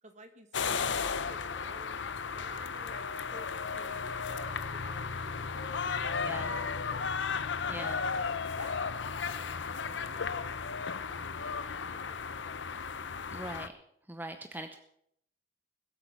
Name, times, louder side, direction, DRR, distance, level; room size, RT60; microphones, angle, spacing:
voice 1, 0.0-2.0 2.3-7.2 7.7-8.3 8.6-9.0 9.3-10.6 10.9-12.6, right 2 dB, 40° right, 7 dB, 1.7 m, -53 dB
sound 1, 0.5-13.7, left 5 dB, 90° left, 0.8 m, -35 dB
voice 2, 7.7-8.0 13.3-13.7 14.1-14.8, right 1 dB, 10° right, 7 dB, 0.7 m, -41 dB
21.0 x 8.5 x 6.1 m, 0.73 s
head